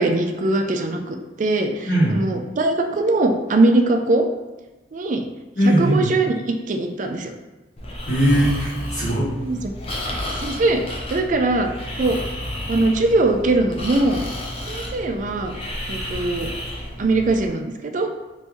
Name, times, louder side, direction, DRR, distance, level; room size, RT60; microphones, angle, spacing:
voice 1, 0.0-4.2 4.9-5.3 5.6-7.3 9.4-9.6 10.4-10.8 11.1-11.7 12.0-12.2 12.7-14.2 14.7-15.5 15.9-16.5 17.0-18.1, right 2 dB, 45° right, 4 dB, 0.4 m, -21 dB
voice 2, 1.8-2.3 5.6-6.1 8.1-9.3, right 1 dB, 55° left, -10 dB, 1.0 m, -19 dB
Breathing, 7.8-17.5, equal, 30° left, 0.5 m, -31 dB
3.1 x 2.6 x 3.4 m, 1.1 s
head